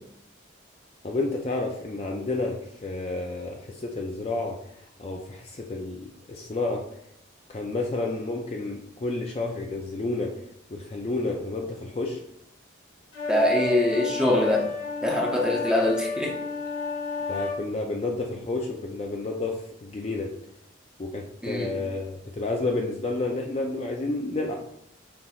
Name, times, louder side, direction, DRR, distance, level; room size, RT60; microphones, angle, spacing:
voice 1, 1.0-6.8 7.5-10.3 10.7-12.2 17.3-20.3 21.0-24.6, left 2 dB, 30° left, 1 dB, 0.4 m, -30 dB
sound 1, 13.1-17.6, left 4 dB, 90° left, 1.6 m, -31 dB
voice 2, 13.3-14.6 15.0-16.4 21.4-21.7, left 1 dB, 5° right, -2 dB, 0.8 m, -23 dB
5.8 x 3.8 x 2.3 m, 0.73 s
head